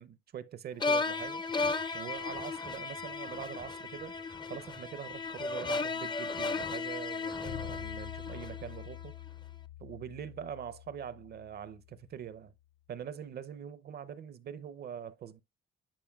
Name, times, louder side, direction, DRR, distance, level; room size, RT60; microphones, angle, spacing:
voice 1, 0.0-1.4 1.9-4.1 4.5-9.1 9.8-12.5 12.9-15.4, right 8 dB, 55° right, 0.6 m, -43 dB
sound 1, 0.8-9.0, left 3 dB, 20° left, 0.5 m, -35 dB
sound 2, 7.5-12.5, left 13 dB, 80° left, 2.4 m, -47 dB
10.5 x 4.8 x 2.3 m
cardioid pair, 90°, 20 cm